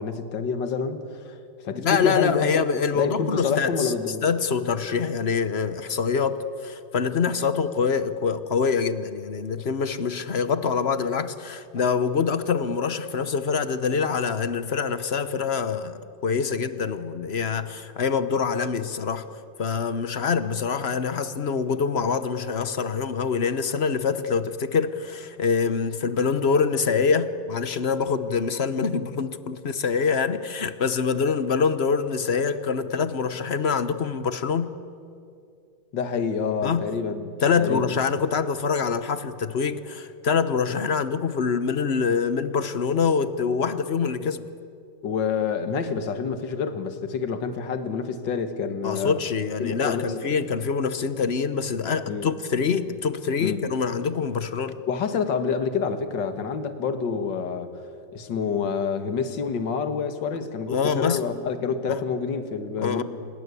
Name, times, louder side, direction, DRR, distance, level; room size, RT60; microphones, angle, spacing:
voice 1, 0.0-1.4 1.6-2.5 2.9-4.3 35.9-37.3 37.6-37.9 45.0-49.2 49.6-50.5 52.1-52.3 53.4-53.6 54.9-57.9 58.1-63.0, left 6 dB, 70° left, 2.1 m, -27 dB
voice 2, 1.7-3.9 4.2-19.3 19.6-34.7 36.6-36.9 37.4-44.4 48.8-54.8 60.7-61.2 61.9-62.0 62.8-63.0, left 5 dB, 45° left, 0.9 m, -25 dB
27.0 x 21.0 x 8.3 m
omnidirectional pair, 2.0 m